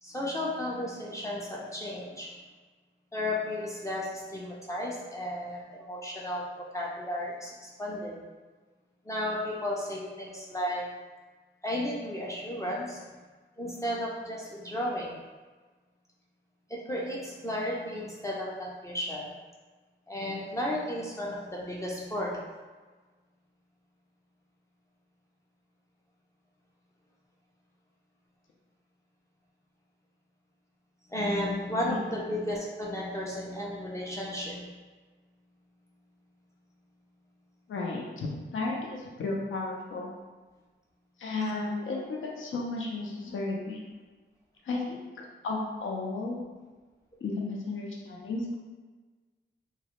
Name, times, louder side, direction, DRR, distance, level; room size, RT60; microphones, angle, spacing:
voice 1, 0.0-2.3 3.1-8.2 9.1-10.9 11.6-13.0 13.6-15.2 16.7-19.3 20.1-22.4 31.1-34.8, left 1 dB, 15° left, -5 dB, 0.4 m, -33 dB
voice 2, 37.7-40.1 41.2-43.9 44.6-45.0 45.4-46.4 47.2-48.6, left 3 dB, 80° left, -1 dB, 0.5 m, -33 dB
2.3 x 2.0 x 2.8 m, 1.3 s
wide cardioid pair, 85°, 20 cm